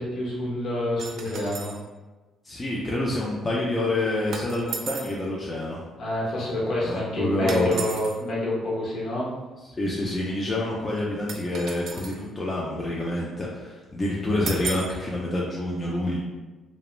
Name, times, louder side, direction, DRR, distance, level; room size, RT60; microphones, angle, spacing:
voice 1, 0.0-1.7 6.0-9.3, left 1 dB, 60° left, -5 dB, 0.8 m, -28 dB
sound 1, 1.0-1.8 4.3-5.2 7.5-8.2 11.3-12.2 14.5-15.0, right 5 dB, 65° right, 0.3 m, -35 dB
voice 2, 2.4-5.8 6.8-7.8 9.8-16.2, left 1 dB, 25° left, -4 dB, 0.4 m, -27 dB
2.3 x 2.0 x 3.0 m, 1.2 s
cardioid pair, 105°, 0 cm